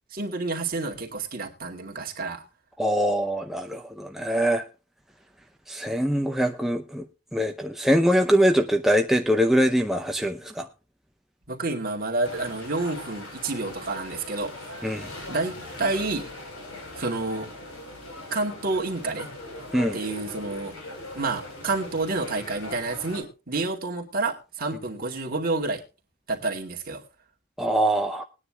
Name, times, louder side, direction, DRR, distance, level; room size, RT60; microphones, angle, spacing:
voice 1, 0.1-2.4 11.5-14.5 15.3-16.3 17.0-17.5 18.3-19.3 19.9-20.8 21.1-25.8 26.3-27.0, right 3 dB, 45° right, 2.3 m, -29 dB
voice 2, 2.8-4.6 5.7-7.0 7.3-10.7 14.8-15.1 19.7-20.0 27.6-28.2, equal, ahead, 0.5 m, -23 dB
sound 1, 12.2-23.2, left 2 dB, 85° left, 4.2 m, -40 dB
21.0 x 9.8 x 2.3 m
head